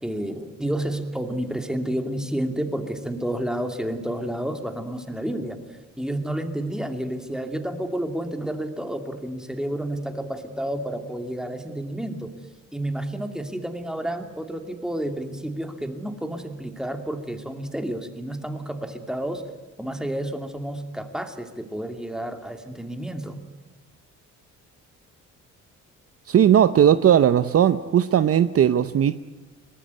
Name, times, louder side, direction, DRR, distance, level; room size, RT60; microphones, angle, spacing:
voice 1, 0.0-5.6 6.0-12.3 12.7-19.4 19.8-23.4, right 1 dB, ahead, 6 dB, 2.7 m, -30 dB
voice 2, 26.3-29.2, right 9 dB, 50° right, 13 dB, 0.7 m, -18 dB
23.5 x 18.5 x 9.6 m, 1.2 s
cardioid pair, 90°, 30 cm